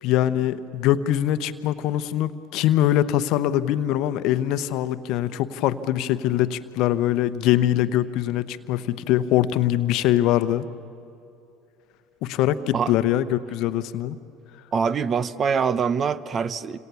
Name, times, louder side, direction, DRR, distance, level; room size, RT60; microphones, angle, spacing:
voice 1, 0.0-10.7 12.2-14.2, left 12 dB, 60° left, 12 dB, 0.9 m, -23 dB
voice 2, 14.7-16.8, right 6 dB, 40° right, 16 dB, 0.8 m, -24 dB
29.5 x 26.5 x 7.0 m, 2.7 s
hypercardioid pair, 70°, 0 cm